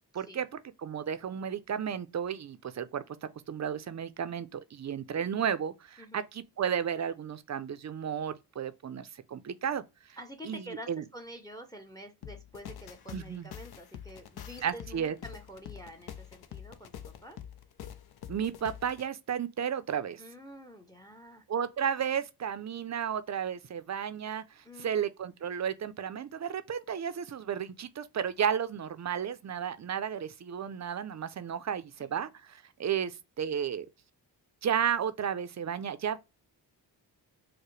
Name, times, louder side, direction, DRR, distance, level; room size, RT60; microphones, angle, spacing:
voice 1, 0.1-0.5 0.8-9.8 10.4-11.0 13.1-13.5 14.6-15.1 18.3-20.2 21.5-33.9 34.6-36.2, right 8 dB, 45° right, 0.5 m, -33 dB
voice 2, 6.0-6.3 10.2-17.4 20.2-21.4 24.6-25.0 32.0-32.3, equal, 10° left, 0.7 m, -48 dB
sound 1, 12.2-19.1, left 10 dB, 65° left, 0.6 m, -46 dB
4.7 x 2.1 x 3.1 m
cardioid pair, 80°, 41 cm